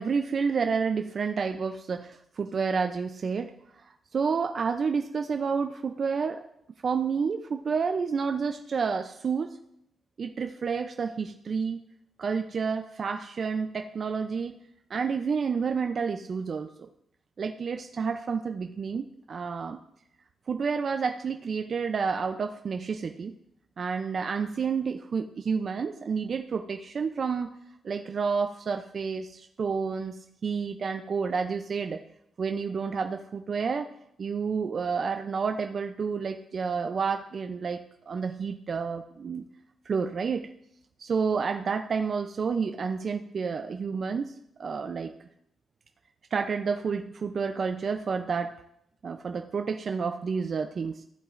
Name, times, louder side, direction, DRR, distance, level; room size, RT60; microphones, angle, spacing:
voice 1, 0.0-3.5 3.8-3.9 4.1-6.4 6.8-9.6 10.2-11.8 12.2-14.5 14.9-16.9 17.4-19.8 20.5-23.3 23.8-27.5 27.8-32.0 32.4-33.9 34.2-39.5 39.9-40.5 41.0-44.3 44.6-45.1 46.3-48.5 49.0-51.0, right 5 dB, 45° right, 6 dB, 0.4 m, -30 dB
15.0 x 8.1 x 2.5 m, 0.76 s
cardioid pair, 125°, 0 cm